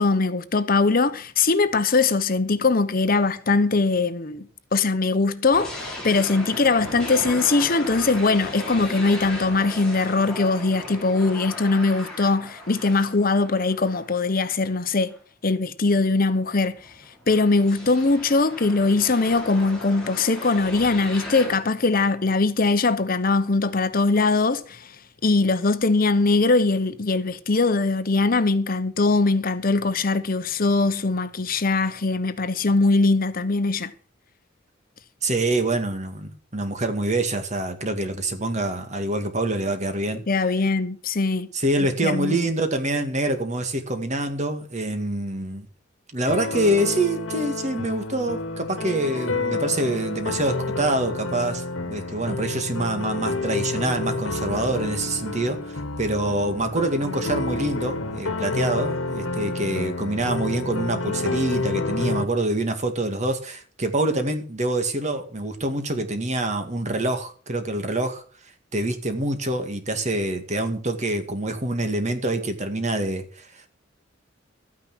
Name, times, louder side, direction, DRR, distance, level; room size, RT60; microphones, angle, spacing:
voice 1, 0.0-4.5 4.7-15.1 15.4-16.8 17.3-24.9 25.2-33.9 40.3-41.5 42.0-42.4, left 3 dB, 45° left, 0.9 m, -21 dB
sound 1, 5.5-14.6 15.1-15.2 16.7-21.6, left 1 dB, 5° left, 5.0 m, -37 dB
voice 2, 35.2-40.2 41.5-45.7 46.1-68.2 68.7-73.7, right 1 dB, 35° right, 2.1 m, -26 dB
sound 2, 46.3-62.2, left 2 dB, 80° left, 1.5 m, -29 dB
13.0 x 9.6 x 6.2 m
head